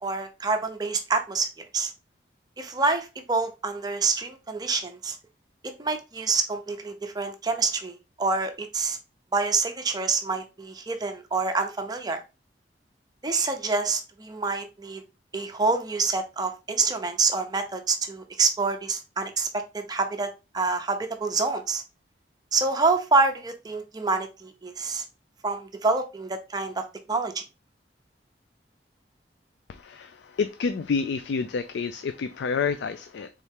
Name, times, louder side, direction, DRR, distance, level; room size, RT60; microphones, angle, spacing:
voice 1, 0.0-1.9 2.6-5.2 5.6-9.0 9.3-12.2 13.2-15.0 15.3-20.3 20.5-21.8 22.5-25.0 25.4-27.4, right 4 dB, 20° right, 0.5 m, -27 dB
voice 2, 29.7-33.3, left 5 dB, 80° left, 0.4 m, -29 dB
4.2 x 3.6 x 3.4 m
head